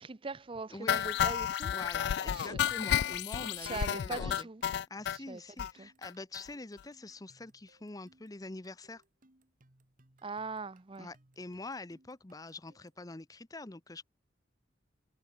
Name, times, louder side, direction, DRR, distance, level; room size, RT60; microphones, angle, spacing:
voice 1, 0.0-1.7 2.3-2.6 3.6-4.6 5.1-5.9 10.2-11.1, right 4 dB, 30° right, 0.6 m, -41 dB
voice 2, 0.7-1.1 1.7-4.5 4.9-9.0 11.0-14.0, left 2 dB, 20° left, 0.7 m, -45 dB
sound 1, 0.9-5.2 5.6-5.7 6.0-6.1 6.3-6.5 6.8-6.9, left 9 dB, 60° left, 0.3 m, -31 dB
sound 2, 1.5-13.1, right 2 dB, 45° right, 1.9 m, -67 dB
head